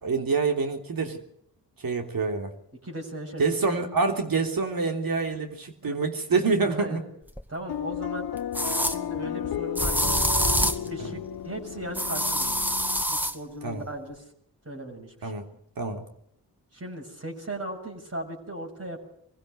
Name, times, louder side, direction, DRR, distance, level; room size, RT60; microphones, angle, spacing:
voice 1, 0.0-1.2 1.8-2.5 3.4-7.0 10.8-11.1 13.6-13.8 15.2-15.4 15.8-16.0, right 4 dB, 65° right, 5 dB, 3.3 m, -27 dB
voice 2, 2.8-4.1 5.8-6.0 6.6-7.0 7.5-8.3 8.8-10.2 10.6-12.7 13.1-14.3 14.6-15.3 16.7-19.0, right 1 dB, 40° right, 0 dB, 6.6 m, -38 dB
sound 1, 7.4-7.5 8.5-9.0 9.8-10.9 12.0-13.4, equal, 5° right, 1.9 m, -25 dB
sound 2, 7.7-13.0, left 10 dB, 80° left, 0.8 m, -34 dB
23.0 x 16.0 x 8.0 m, 0.69 s
cardioid pair, 45°, 37 cm